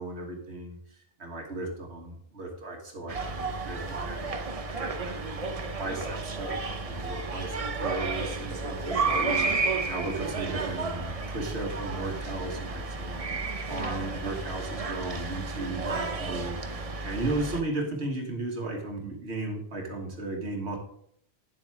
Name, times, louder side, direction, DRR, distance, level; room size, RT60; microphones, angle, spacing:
voice 1, 0.0-13.4 13.7-20.8, right 2 dB, 70° right, 2 dB, 1.8 m, -35 dB
sound 1, 3.1-17.6, right 3 dB, 35° right, 0.8 m, -32 dB
10.0 x 7.5 x 3.5 m, 0.68 s
omnidirectional pair, 1.2 m